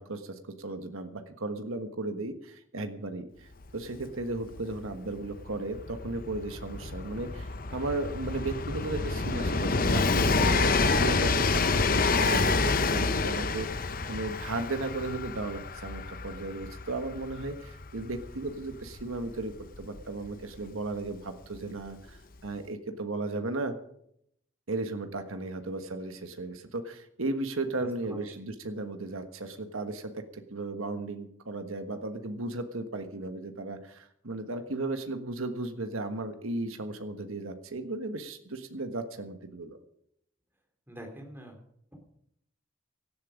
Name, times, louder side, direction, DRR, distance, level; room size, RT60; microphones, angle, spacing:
voice 1, 0.0-3.5 3.7-23.8 24.7-39.8, right 2 dB, 90° right, 7 dB, 1.4 m, -35 dB
Train, 3.7-3.8 3.9-20.6 21.5-21.6, left 3 dB, 45° left, 0.8 m, -28 dB
voice 2, 27.8-28.2 40.9-41.6 41.9-42.0, equal, 10° right, 2 dB, 3.3 m, -44 dB
17.5 x 12.0 x 5.2 m, 0.72 s
head